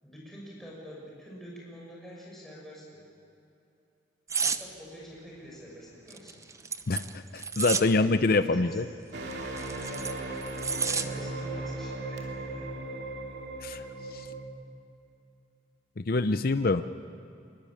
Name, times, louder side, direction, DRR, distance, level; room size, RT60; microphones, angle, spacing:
voice 1, 0.0-3.0 4.4-6.4 7.3-8.8 9.9-12.7, equal, ahead, -4 dB, 6.5 m, -46 dB
sound 1, 4.3-4.6 6.1-7.9 9.3-11.1 11.5-11.7, right 5 dB, 15° right, 0.8 m, -31 dB
voice 2, 6.9-8.8 13.6-13.8 14.1-14.3 16.1-16.8, left 3 dB, 55° left, 10 dB, 0.6 m, -25 dB
sound 2, 9.1-14.4, right 2 dB, 65° right, 2.9 m, -37 dB
23.0 x 23.0 x 8.7 m, 2.7 s
head